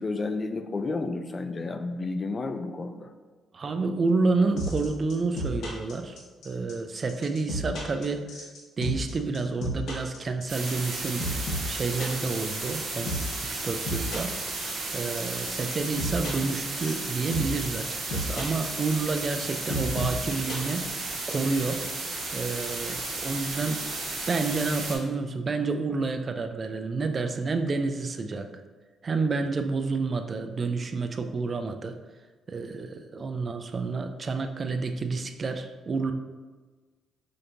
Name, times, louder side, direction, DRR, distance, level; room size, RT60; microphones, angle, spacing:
voice 1, 0.0-3.1, left 3 dB, 35° left, 7 dB, 0.3 m, -31 dB
voice 2, 3.5-6.2 6.4-8.3 8.8-11.3 11.7-14.3 14.9-20.9 21.3-21.8 22.3-23.9 24.3-28.5 29.0-31.9 32.5-36.1, right 3 dB, 40° right, 7 dB, 0.3 m, -29 dB
sound 1, 4.6-21.3, equal, 75° left, 1.1 m, -33 dB
sound 2, 10.5-25.0, right 3 dB, 70° right, 1.2 m, -34 dB
5.0 x 2.8 x 2.6 m, 1.4 s
cardioid pair, 90°, 0 cm